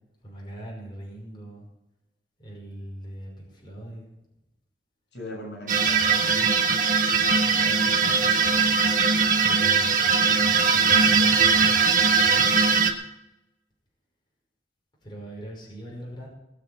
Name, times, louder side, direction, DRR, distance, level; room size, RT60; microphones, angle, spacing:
voice 1, 0.2-1.7 2.4-4.1 9.4-11.7 12.0-12.7 15.0-16.3, right 1 dB, 25° left, -3 dB, 5.5 m, -41 dB
voice 2, 5.1-6.8 7.5-8.8, equal, 75° left, 1 dB, 6.3 m, -41 dB
sound 1, 5.7-12.9, right 5 dB, 45° right, 1.6 m, -20 dB
20.0 x 7.2 x 7.7 m, 0.95 s
head